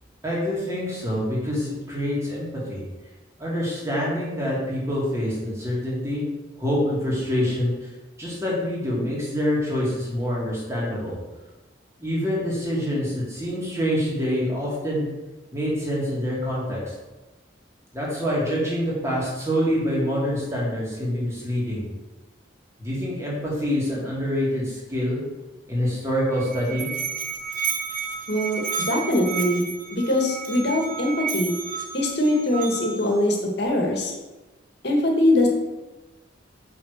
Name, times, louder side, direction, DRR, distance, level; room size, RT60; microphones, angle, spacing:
voice 1, 0.2-2.8 3.4-6.3 6.6-7.9 8.2-11.1 12.0-15.1 15.5-16.9 17.9-21.8 22.8-25.2 25.7-26.9, equal, 15° right, -6 dB, 2.3 m, -26 dB
Musical instrument, 26.3-33.2, right 6 dB, 45° right, 0.9 m, -32 dB
voice 2, 28.3-29.6 29.9-31.6 31.9-34.1 34.8-35.5, left 1 dB, 55° left, 1 dB, 1.7 m, -22 dB
5.7 x 5.0 x 6.5 m, 1.1 s
head